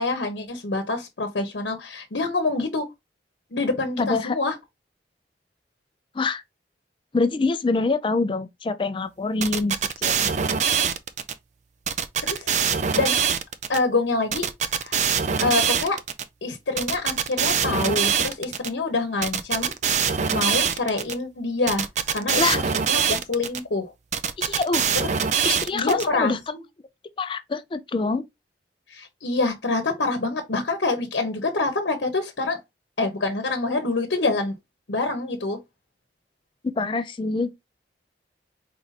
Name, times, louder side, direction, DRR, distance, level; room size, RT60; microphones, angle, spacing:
voice 1, 0.0-2.8 3.5-4.6 12.2-12.5 12.9-13.1 13.7-14.5 14.8-15.0 15.4-16.0 16.4-21.9 22.1-23.9 24.9-25.1 25.7-26.6 28.9-32.6 33.0-34.5 34.9-35.6, left 3 dB, 85° left, 0.9 m, -26 dB
voice 2, 4.0-4.4 6.1-6.4 7.1-10.3 22.4-22.6 24.4-24.8 25.4-26.4 27.2-28.2 36.6-37.7, left 3 dB, 30° left, 0.4 m, -25 dB
sound 1, 9.4-11.3 11.9-13.8 14.3-16.2 16.8-18.7 19.2-21.1 21.7-23.6 24.1-26.0, right 7 dB, 40° right, 0.4 m, -23 dB
4.5 x 2.6 x 4.0 m
head